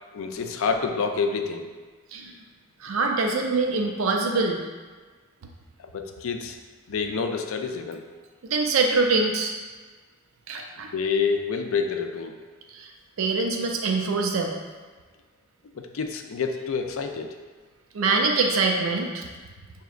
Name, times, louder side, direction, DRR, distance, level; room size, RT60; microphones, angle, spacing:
voice 1, 0.1-1.7 5.8-6.6 6.9-8.0 10.9-12.4 15.7-17.3, left 5 dB, 75° left, 5 dB, 0.4 m, -28 dB
voice 2, 2.8-4.6 8.5-9.5 10.5-10.9 12.7-12.9 13.2-14.5 17.9-19.3, right 3 dB, 75° right, 2 dB, 0.5 m, -24 dB
6.0 x 2.9 x 2.4 m, 1.4 s
head